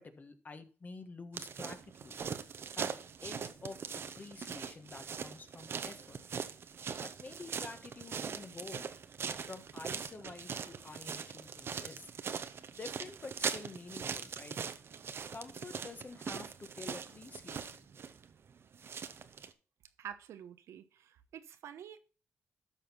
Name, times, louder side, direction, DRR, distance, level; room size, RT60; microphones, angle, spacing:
voice 1, 0.0-2.2 2.8-2.9 3.2-6.2 7.0-8.9 9.5-12.1 12.7-14.6 15.3-17.9, left 3 dB, 35° left, 1.4 m, -49 dB
sound 1, 1.3-19.5, right 6 dB, 55° right, 0.9 m, -41 dB
voice 2, 20.0-22.0, right 9 dB, 80° right, 0.9 m, -48 dB
12.5 x 4.4 x 5.7 m
cardioid pair, 70°, 5 cm